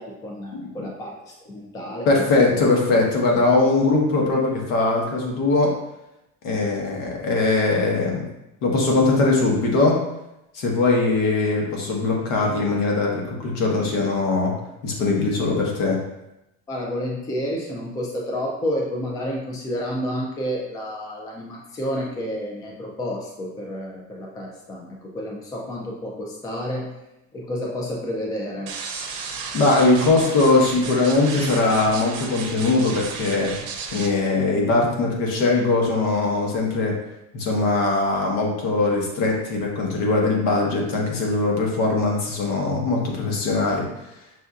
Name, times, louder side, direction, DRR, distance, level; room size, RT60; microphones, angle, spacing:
voice 1, 0.0-2.3 16.7-26.9 27.3-28.7, equal, 10° left, -1 dB, 0.3 m, -30 dB
voice 2, 2.1-5.7 6.4-8.3 8.6-10.0 10.5-14.5 14.8-16.0 29.5-33.5 33.9-36.9 37.3-43.9, left 3 dB, 75° left, -1 dB, 1.2 m, -21 dB
sound 1, 28.7-34.1, right 5 dB, 85° right, 0.7 m, -33 dB
6.0 x 2.6 x 2.4 m, 0.89 s
cardioid pair, 165°, 32 cm